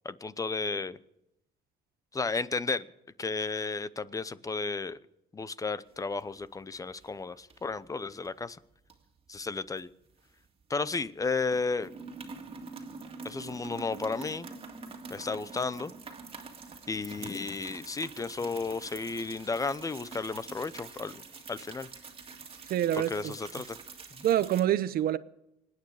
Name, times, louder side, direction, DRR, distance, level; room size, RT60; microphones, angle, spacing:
voice 1, 0.0-1.0 2.1-2.9 3.2-5.0 5.3-8.6 9.3-9.9 10.7-11.9 13.2-14.5 15.1-15.9 16.9-21.2 21.5-21.9 22.9-23.8, left 4 dB, 20° left, 0.7 m, -33 dB
sound 1, 5.9-6.6 6.9-7.1 7.5-8.3 8.9-10.8 11.1-11.2 11.5-24.6, right 4 dB, 35° right, 2.1 m, -46 dB
voice 2, 22.7-23.3 24.2-25.2, right 11 dB, 60° right, 0.8 m, -26 dB
26.5 x 9.4 x 4.9 m
cardioid pair, 110°, 17 cm